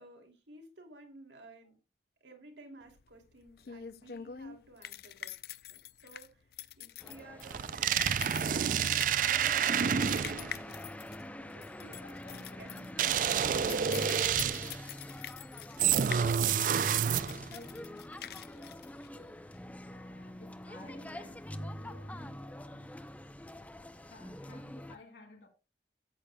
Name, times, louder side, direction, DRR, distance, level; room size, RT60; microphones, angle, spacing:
voice 1, 0.0-1.8 2.2-10.8 11.4-14.3, right 2 dB, 85° right, 2.7 m, -55 dB
sound 1, 2.9-19.6, left 10 dB, 55° left, 0.4 m, -46 dB
sound 2, 7.0-25.0, left 1 dB, 10° left, 0.5 m, -45 dB
sound 3, 7.4-10.6 13.0-14.8 15.8-17.5, right 8 dB, 45° right, 0.4 m, -29 dB
voice 2, 11.8-12.6 16.9-19.4 19.8-22.9 24.0-25.5, left 2 dB, 90° left, 3.0 m, -56 dB
13.5 x 8.6 x 2.2 m
head